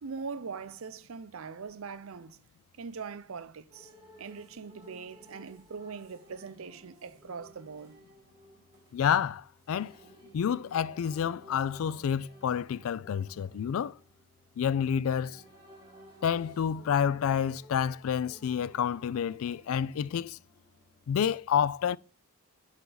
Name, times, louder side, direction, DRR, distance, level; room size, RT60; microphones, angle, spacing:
voice 1, 0.0-2.4 2.8-3.9 4.2-8.0, right 5 dB, 75° right, 0.5 m, -41 dB
sound 1, 3.7-21.3, equal, 20° right, 3.6 m, -57 dB
voice 2, 8.9-10.0 10.3-14.0 14.6-15.4 16.2-20.4 21.1-22.0, left 8 dB, 75° left, 0.3 m, -29 dB
9.2 x 4.5 x 3.9 m
head